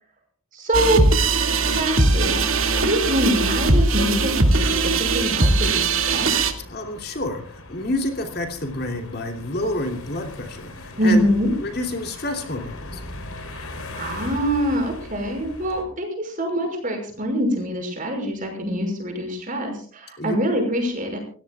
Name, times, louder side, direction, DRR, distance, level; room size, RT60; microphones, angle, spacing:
voice 1, 0.5-1.0 1.7-2.4 2.8-4.3 4.6-6.3 11.0-11.5 13.4-21.2, equal, 40° right, 2 dB, 6.0 m, -24 dB
sound 1, 0.7-6.5, right 3 dB, 70° right, 2.3 m, -20 dB
sound 2, 2.1-15.8, left 2 dB, 85° left, 3.9 m, -40 dB
voice 2, 6.7-11.3 11.6-13.0 20.2-20.4, left 1 dB, 50° left, 4 dB, 3.1 m, -29 dB
29.5 x 16.5 x 2.4 m, 0.44 s
head